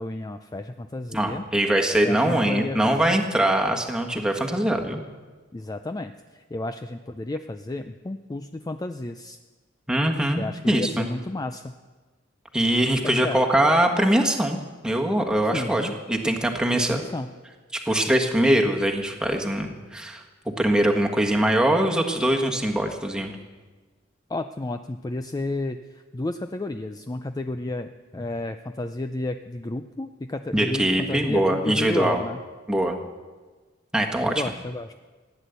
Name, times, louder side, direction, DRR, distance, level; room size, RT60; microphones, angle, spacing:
voice 1, 0.0-1.4 2.0-3.2 5.5-6.1 6.5-9.4 10.4-11.7 13.2-13.4 15.5-15.9 16.7-17.3 24.3-32.4 34.2-34.9, left 2 dB, 20° left, 8 dB, 0.4 m, -32 dB
voice 2, 1.1-5.0 9.9-11.1 12.5-17.0 17.7-20.2 20.6-23.3 30.5-32.2 32.7-33.0 33.9-34.3, right 1 dB, 5° right, 2 dB, 1.5 m, -22 dB
15.5 x 10.0 x 8.1 m, 1.3 s
head